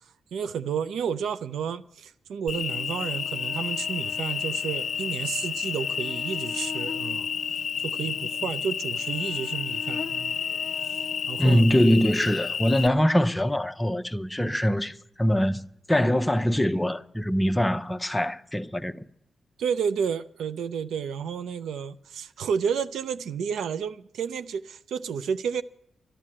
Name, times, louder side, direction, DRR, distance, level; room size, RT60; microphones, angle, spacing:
voice 1, 0.3-7.3 7.8-10.4 10.8-11.0 11.3-11.6 19.6-25.6, right 7 dB, 90° right, 0.5 m, -31 dB
Cricket, 2.5-12.9, left 7 dB, 50° left, 0.6 m, -30 dB
voice 2, 11.4-15.6 15.9-19.0, equal, 5° left, 0.7 m, -23 dB
12.5 x 12.5 x 8.7 m
wide cardioid pair, 140°, 0 cm